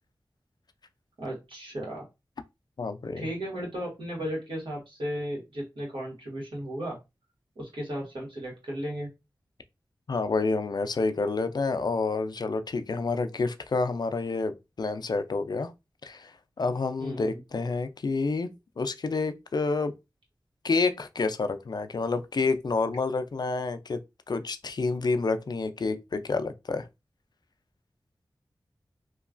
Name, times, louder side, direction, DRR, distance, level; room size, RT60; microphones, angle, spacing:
voice 1, 1.2-2.0 3.2-7.0 7.5-9.1 17.0-17.4, equal, 80° right, 1.4 m, -35 dB
voice 2, 2.8-3.3 10.1-15.7 16.0-18.5 18.8-19.9 20.6-24.0 24.3-26.9, left 3 dB, 55° left, 0.4 m, -28 dB
3.0 x 2.3 x 2.4 m
cardioid pair, 40°, 8 cm